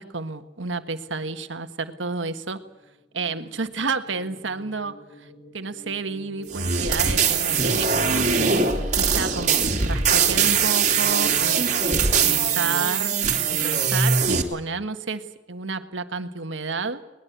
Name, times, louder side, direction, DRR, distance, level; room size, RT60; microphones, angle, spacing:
voice 1, 0.0-2.6 3.1-5.3 5.5-8.2 9.0-11.8 12.2-13.1 13.5-17.0, right 4 dB, 85° right, 9 dB, 1.6 m, -31 dB
sound 1, 2.7-12.9, equal, 20° left, 6.7 m, -43 dB
sound 2, 6.5-14.4, right 6 dB, 40° right, 2.9 m, -21 dB
22.0 x 21.0 x 8.3 m, 1.1 s
head